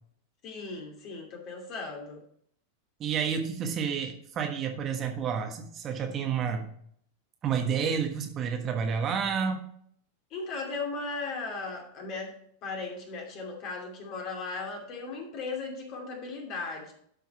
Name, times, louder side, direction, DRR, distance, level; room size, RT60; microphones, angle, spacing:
voice 1, 0.4-2.2 10.3-12.3 12.6-16.9, left 3 dB, 40° left, 1 dB, 2.6 m, -37 dB
voice 2, 3.0-6.7 7.4-9.6, right 7 dB, 30° right, 4 dB, 1.3 m, -30 dB
12.0 x 5.6 x 4.2 m, 0.65 s
figure-of-eight pair, 90°, 0 cm